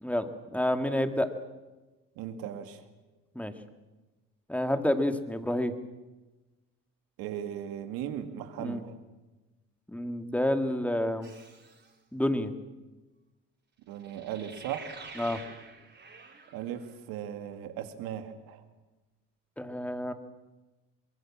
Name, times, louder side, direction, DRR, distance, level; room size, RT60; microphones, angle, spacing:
voice 1, 0.0-1.3 3.4-3.5 4.5-5.7 8.6-8.8 9.9-11.3 12.1-12.5 15.2-15.4 19.6-20.1, left 1 dB, 5° left, 8 dB, 2.2 m, -29 dB
voice 2, 2.2-2.8 7.2-8.9 13.9-15.1 16.5-18.6, right 10 dB, 85° right, 8 dB, 2.3 m, -37 dB
sound 1, 11.2-11.9 14.0-16.9, right 4 dB, 30° right, 4.4 m, -48 dB
24.0 x 22.0 x 7.4 m, 1.1 s
supercardioid pair, 85°, 35 cm